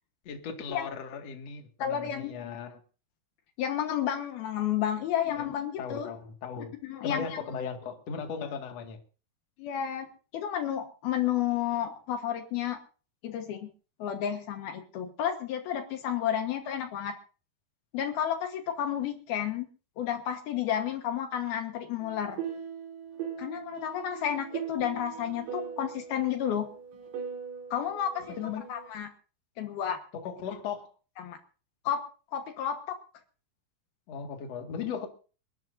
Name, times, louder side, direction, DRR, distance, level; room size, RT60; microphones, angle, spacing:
voice 1, 0.2-2.8 5.2-5.4 5.8-6.7 7.0-9.0 28.4-28.6 30.1-30.9 34.1-35.1, left 6 dB, 45° left, 4 dB, 2.7 m, -37 dB
voice 2, 1.8-2.3 3.6-6.1 6.8-7.4 9.6-10.1 10.3-12.8 13.2-13.7 14.0-17.1 17.9-19.7 20.0-22.4 23.4-26.7 27.7-28.4 28.7-29.1 29.6-30.0 31.2-31.4 31.8-32.0 32.3-33.0, left 10 dB, 70° left, 5 dB, 3.2 m, -31 dB
sound 1, 22.0-28.9, right 7 dB, 85° right, 5.6 m, -40 dB
29.0 x 12.0 x 2.7 m, 0.37 s
omnidirectional pair, 4.7 m